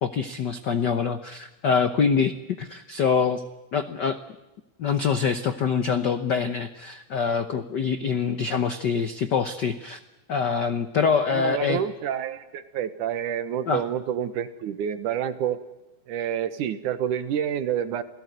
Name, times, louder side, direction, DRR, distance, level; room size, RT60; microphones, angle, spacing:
voice 1, 0.0-3.4 3.7-4.2 4.8-10.0 10.3-11.8 13.7-13.8, left 6 dB, 85° left, 11 dB, 0.9 m, -25 dB
voice 2, 11.3-15.6 16.1-18.0, right 9 dB, 85° right, 12 dB, 2.9 m, -28 dB
28.0 x 18.0 x 9.2 m, 1.0 s
omnidirectional pair, 3.5 m